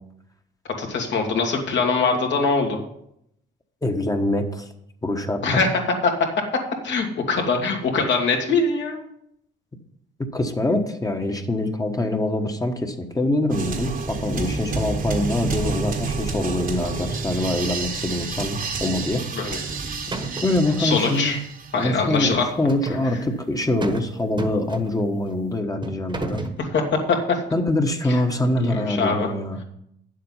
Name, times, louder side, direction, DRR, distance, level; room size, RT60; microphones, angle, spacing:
voice 1, 0.8-2.8 5.4-6.1 6.8-9.0 19.3-19.6 20.8-21.4 21.7-22.4 26.6-26.8 27.3-27.4 28.1-28.2 28.6-29.3, left 4 dB, 65° left, 1 dB, 2.4 m, -22 dB
voice 2, 3.8-4.7 5.0-5.6 10.2-19.2 20.4-21.4 21.7-26.4 27.5-29.6, left 1 dB, 20° left, 4 dB, 1.3 m, -24 dB
sound 1, 13.5-22.0, right 4 dB, 45° right, 1.3 m, -29 dB
sound 2, 19.4-19.8 20.1-20.6 22.1-23.1 23.8-24.1 24.4-25.1 25.8-26.6, right 2 dB, 25° right, 1.3 m, -32 dB
9.4 x 7.6 x 5.6 m, 0.74 s
cardioid pair, 90°, 20 cm